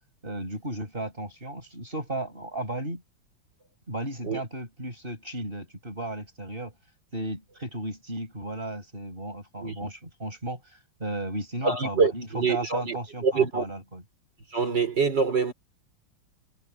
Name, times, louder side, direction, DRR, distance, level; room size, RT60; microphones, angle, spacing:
voice 1, 0.2-3.0 3.9-6.7 7.1-14.0, right 1 dB, 25° right, 7.1 m, -35 dB
voice 2, 11.6-13.0 13.2-13.6 14.5-15.5, right 5 dB, 55° right, 5.3 m, -25 dB
omnidirectional pair, 2.3 m